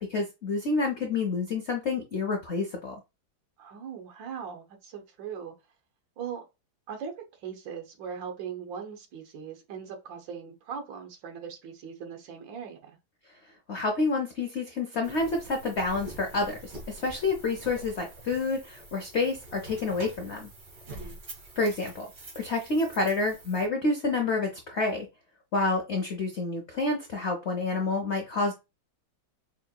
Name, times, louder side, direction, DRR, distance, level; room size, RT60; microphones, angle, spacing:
voice 1, 0.0-2.9 13.7-20.5 21.6-22.1 22.4-25.1 25.5-28.5, left 3 dB, 75° left, 0.6 m, -28 dB
voice 2, 3.6-5.5 6.2-6.4 6.9-7.1 7.4-13.0 20.9-21.2, right 7 dB, 70° right, 1.6 m, -40 dB
sound 1, 15.0-23.7, right 2 dB, 55° right, 2.2 m, -46 dB
5.5 x 2.9 x 2.3 m
omnidirectional pair, 2.2 m